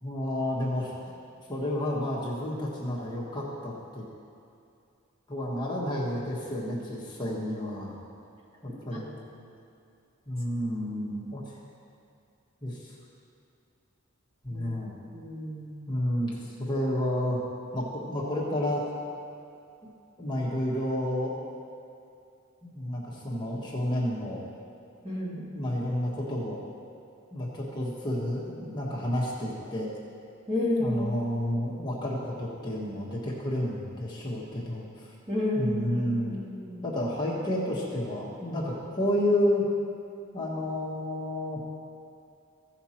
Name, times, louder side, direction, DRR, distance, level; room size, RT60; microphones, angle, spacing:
voice 1, 0.0-0.9 1.5-4.0 5.3-7.9 8.6-9.2 10.3-11.6 12.6-12.9 14.4-15.0 15.9-17.4 17.7-18.9 20.2-21.4 22.6-24.4 25.5-26.6 27.3-29.9 30.8-35.1 35.6-36.4 36.8-39.6 40.3-41.6, left 1 dB, 20° left, -6 dB, 1.4 m, -30 dB
voice 2, 15.1-15.8 25.0-25.4 30.5-31.0 35.3-36.8, left 1 dB, 25° right, -5 dB, 2.0 m, -31 dB
15.5 x 5.8 x 4.4 m, 2.5 s
head